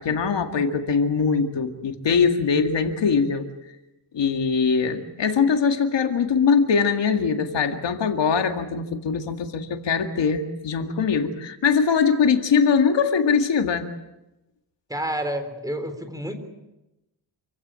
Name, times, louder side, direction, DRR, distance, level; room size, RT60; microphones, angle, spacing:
voice 1, 0.0-3.5 4.1-13.9, left 5 dB, 90° left, 5 dB, 2.1 m, -22 dB
voice 2, 14.9-16.3, right 1 dB, 10° right, 7 dB, 3.8 m, -29 dB
27.5 x 16.5 x 8.9 m, 0.96 s
wide cardioid pair, 110°, 42 cm